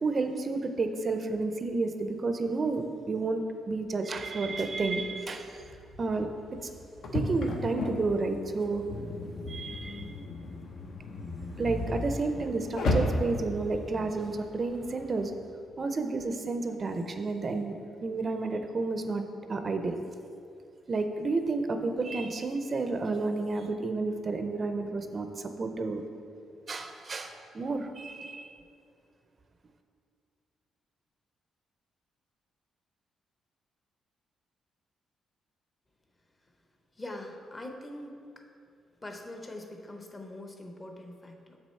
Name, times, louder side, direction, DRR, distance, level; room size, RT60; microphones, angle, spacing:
voice 1, 0.0-5.6 6.0-6.3 6.6-6.7 7.1-8.8 9.5-10.1 11.6-15.3 15.8-17.7 18.0-19.2 19.5-20.0 20.9-26.0 26.7-28.6, right 3 dB, 35° right, 6 dB, 0.5 m, -31 dB
sound 1, 5.6-15.3, left 1 dB, 70° left, 0.9 m, -35 dB
sound 2, 8.9-13.4, left 3 dB, 50° left, 0.5 m, -40 dB
voice 2, 37.0-38.4 39.0-41.6, left 1 dB, 20° left, 3 dB, 0.7 m, -43 dB
7.1 x 6.2 x 4.3 m, 2.4 s
cardioid pair, 135°, 0 cm